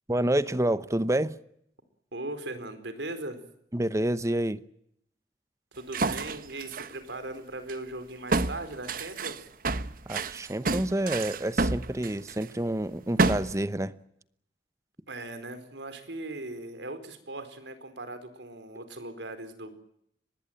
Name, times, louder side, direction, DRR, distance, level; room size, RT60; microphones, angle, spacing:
voice 1, 0.1-1.3 3.7-4.6 10.1-13.9, right 1 dB, 15° right, 0.9 m, -28 dB
voice 2, 2.1-3.4 5.8-9.5 15.1-19.7, right 2 dB, 80° right, 4.5 m, -39 dB
masse demolition gp, 5.9-6.9 7.7-7.8 8.3-12.4 13.2-13.6, right 3 dB, 50° right, 1.0 m, -28 dB
24.0 x 20.5 x 9.0 m
head